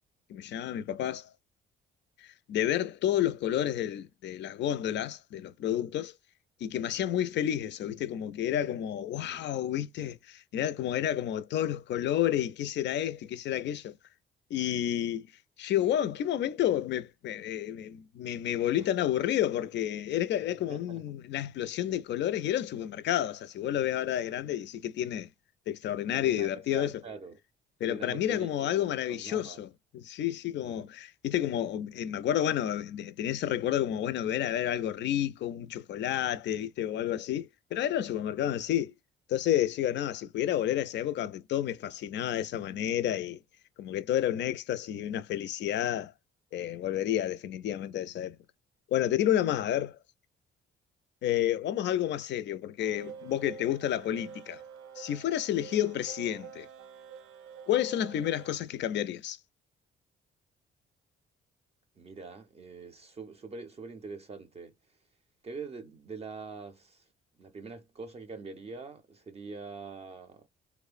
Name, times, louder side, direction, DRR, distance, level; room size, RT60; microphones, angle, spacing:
voice 1, 0.3-1.3 2.2-6.1 6.6-14.0 14.5-15.3 15.6-25.3 25.7-26.9 27.8-29.7 29.9-38.9 39.3-43.4 43.8-46.1 46.5-48.4 48.9-50.0 51.2-54.6 55.0-56.7 57.7-59.4, left 11 dB, 65° left, 0.4 m, -30 dB
voice 2, 20.7-21.0 26.1-27.4 27.8-28.7 29.1-29.6 30.6-30.9 62.0-65.0 65.4-67.1 67.4-70.5, right 4 dB, 30° right, 0.4 m, -44 dB
sound 1, 52.8-58.6, right 8 dB, 90° right, 0.5 m, -48 dB
3.0 x 2.1 x 2.4 m
cardioid pair, 90°, 20 cm